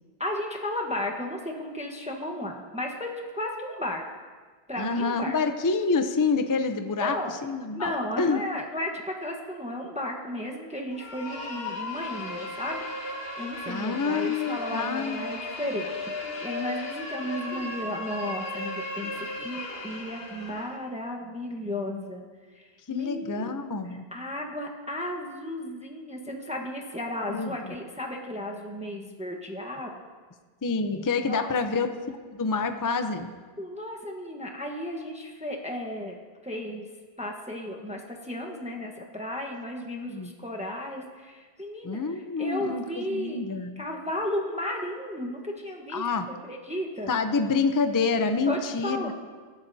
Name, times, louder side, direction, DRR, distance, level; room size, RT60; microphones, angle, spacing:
voice 1, 0.2-4.0 4.7-5.4 7.0-7.3 7.7-12.9 13.4-22.3 22.5-29.9 31.3-31.5 33.6-36.2 36.4-36.9 37.2-43.5 43.8-47.1 48.5-49.1, left 1 dB, 5° right, 1 dB, 1.1 m, -34 dB
voice 2, 4.8-7.2 7.4-7.9 8.2-8.4 13.7-15.2 22.9-24.0 27.3-27.7 30.6-33.3 40.1-40.3 41.8-43.8 45.9-46.3 47.1-49.1, left 4 dB, 25° left, 7 dB, 0.5 m, -27 dB
sound 1, 10.9-20.8, left 2 dB, 70° left, 1.7 m, -36 dB
21.5 x 11.0 x 2.7 m, 1.5 s
omnidirectional pair, 1.1 m